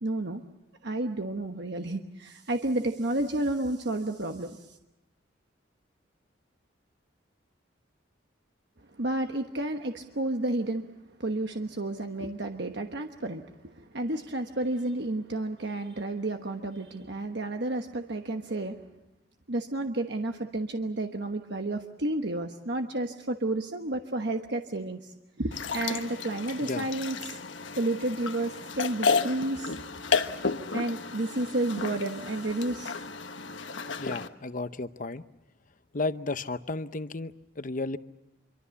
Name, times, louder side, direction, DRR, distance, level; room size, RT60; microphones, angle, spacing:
voice 1, 0.0-0.4 0.8-4.8 9.0-10.9 11.2-18.8 19.5-27.4 27.8-29.8 30.7-33.0, right 2 dB, 60° right, 5 dB, 1.2 m, -31 dB
sound 1, 25.5-34.3, left 5 dB, 75° left, 1.3 m, -32 dB
voice 2, 34.0-35.2 35.9-38.0, left 3 dB, 45° left, 12 dB, 0.8 m, -33 dB
26.0 x 24.0 x 7.1 m, 0.94 s
head